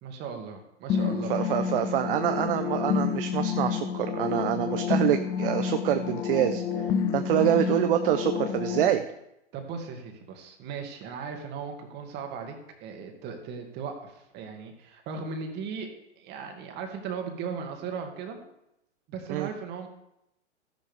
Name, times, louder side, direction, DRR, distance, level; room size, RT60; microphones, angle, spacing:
voice 1, 0.0-1.5 7.3-7.5 9.5-12.6 12.8-15.9 16.2-18.4 19.1-19.9, right 6 dB, 30° right, 4 dB, 2.1 m, -37 dB
sound 1, 0.9-8.9, left 7 dB, 10° left, 0.3 m, -29 dB
voice 2, 1.3-6.6 7.1-9.0 19.3-19.5, right 12 dB, 50° right, 8 dB, 0.8 m, -26 dB
14.0 x 10.5 x 3.6 m, 0.82 s
hypercardioid pair, 125°, 36 cm